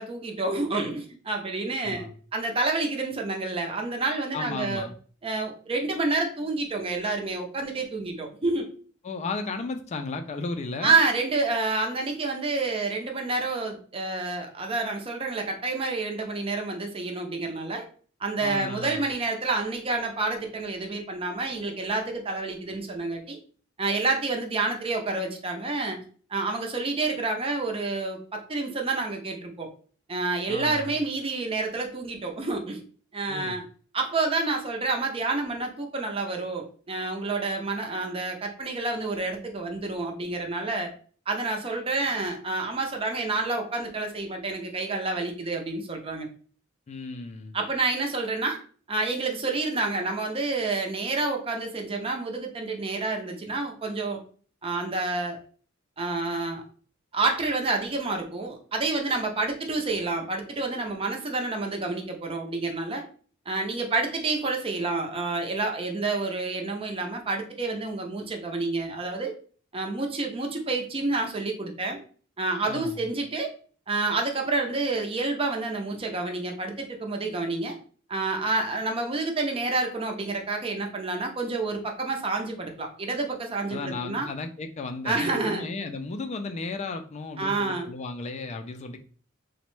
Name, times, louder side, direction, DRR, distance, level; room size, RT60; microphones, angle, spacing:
voice 1, 0.0-4.8 5.2-8.7 10.8-17.9 18.2-23.4 23.8-26.0 26.3-29.7 30.1-32.8 33.1-33.6 33.9-40.9 41.3-46.3 47.5-48.6 48.9-54.2 54.6-55.4 56.0-56.6 57.1-63.0 63.5-69.3 69.7-72.0 72.4-73.5 73.9-77.8 78.1-84.3 85.0-85.6 87.4-87.9, right 3 dB, 30° right, 3 dB, 0.5 m, -28 dB
voice 2, 4.3-4.9 9.0-11.0 18.4-19.0 30.5-30.9 33.3-33.6 46.9-47.5 72.7-73.1 83.7-89.0, left 3 dB, 35° left, 7 dB, 0.3 m, -34 dB
3.0 x 2.1 x 3.0 m, 0.42 s
head